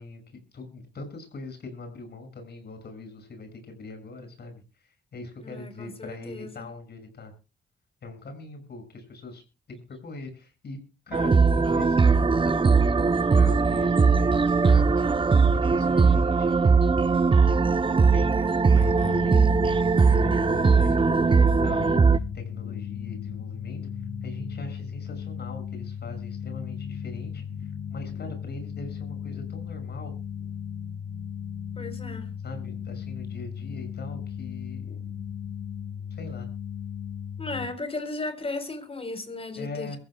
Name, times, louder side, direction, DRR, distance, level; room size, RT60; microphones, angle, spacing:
voice 1, 0.0-7.3 8.0-9.4 9.7-10.8 11.1-12.9 13.2-15.0 15.7-16.6 17.4-17.6 18.0-30.2 32.4-35.0 36.1-36.5 39.6-40.0, left 2 dB, 60° left, 6.9 m, -42 dB
voice 2, 5.4-6.7 31.8-32.3 37.4-40.0, left 2 dB, 30° left, 4.3 m, -35 dB
sound 1, 11.1-22.2, right 4 dB, 25° right, 0.7 m, -20 dB
sound 2, 18.7-37.7, left 8 dB, 85° left, 2.4 m, -36 dB
23.0 x 15.0 x 2.4 m
cardioid pair, 80°, 19 cm